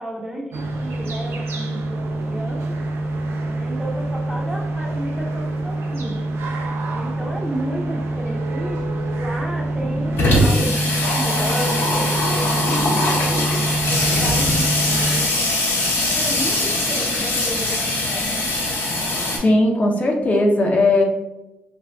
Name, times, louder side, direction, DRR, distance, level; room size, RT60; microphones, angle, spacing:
voice 1, 0.0-2.8 3.4-6.2 6.9-8.8 9.1-13.6 13.8-15.3 16.1-18.5, right 1 dB, 10° right, 0 dB, 0.6 m, -32 dB
sound 1, 0.5-15.2, right 2 dB, 75° right, 0.4 m, -25 dB
Water tap faucet / Sink (filling or washing), 8.8-8.9 9.1-9.2 9.5-19.4, left 1 dB, 70° left, 0.8 m, -21 dB
voice 2, 19.4-21.0, left 2 dB, 35° left, 0 dB, 0.5 m, -17 dB
2.5 x 2.1 x 3.3 m, 0.95 s
cardioid pair, 75°, 4 cm